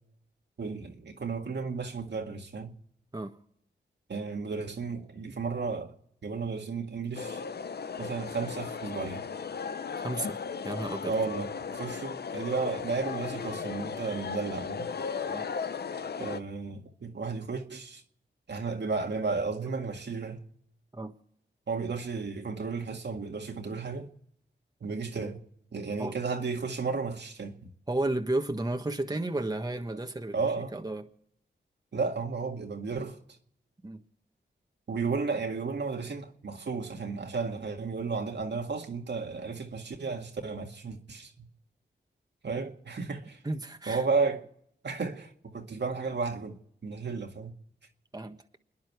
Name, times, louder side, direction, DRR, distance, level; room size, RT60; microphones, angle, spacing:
voice 1, 0.6-2.7 4.1-6.0 6.2-7.4 8.0-9.2 11.1-14.9 16.2-18.0 18.5-20.4 21.7-24.1 24.8-25.4 25.7-27.7 30.3-30.7 31.9-33.2 34.9-41.5 42.4-43.4 43.9-44.4 44.8-47.5, right 4 dB, 65° right, 2.0 m, -33 dB
sound 1, 7.1-16.4, left 6 dB, 60° left, 0.8 m, -36 dB
voice 2, 9.9-10.4 10.6-11.1 15.3-15.8 20.9-21.1 26.0-26.2 27.9-30.4 30.7-31.1 33.8-34.0 43.4-44.0 48.1-48.4, right 2 dB, 20° right, 1.5 m, -33 dB
29.5 x 10.5 x 4.7 m
cardioid pair, 50°, 19 cm